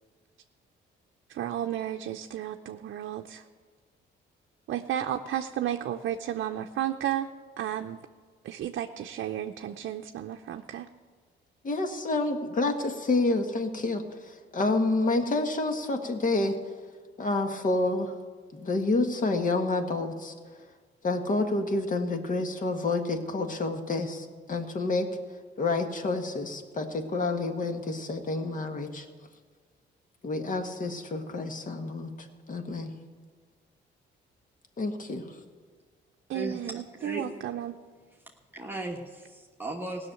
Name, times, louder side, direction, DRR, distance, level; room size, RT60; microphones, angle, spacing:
voice 1, 1.3-3.4 4.7-7.3 7.6-8.0 8.4-10.9 36.3-37.7, right 11 dB, 65° right, 4 dB, 0.6 m, -33 dB
voice 2, 11.6-16.6 17.2-18.2 18.5-20.3 21.0-25.1 25.6-29.1 30.2-32.9 34.8-35.4, left 2 dB, 40° left, 6 dB, 1.7 m, -29 dB
voice 3, 38.5-40.1, right 2 dB, 10° right, -2 dB, 1.4 m, -36 dB
16.5 x 6.5 x 9.1 m, 1.5 s
cardioid pair, 90°, 20 cm